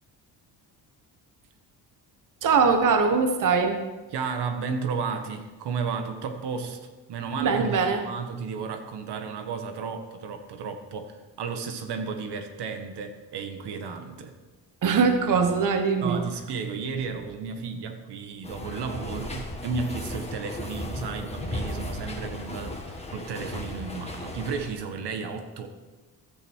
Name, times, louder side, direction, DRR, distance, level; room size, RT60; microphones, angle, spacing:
voice 1, 2.4-3.8 7.4-8.0 14.8-16.2, right 5 dB, 50° right, 6 dB, 1.3 m, -22 dB
voice 2, 4.1-6.8 7.1-14.3 16.0-25.7, right 5 dB, 80° right, 6 dB, 1.6 m, -33 dB
sound 1, 18.4-24.7, left 1 dB, 15° left, 1.8 m, -35 dB
15.5 x 11.5 x 4.7 m, 1.2 s
cardioid pair, 115°, 40 cm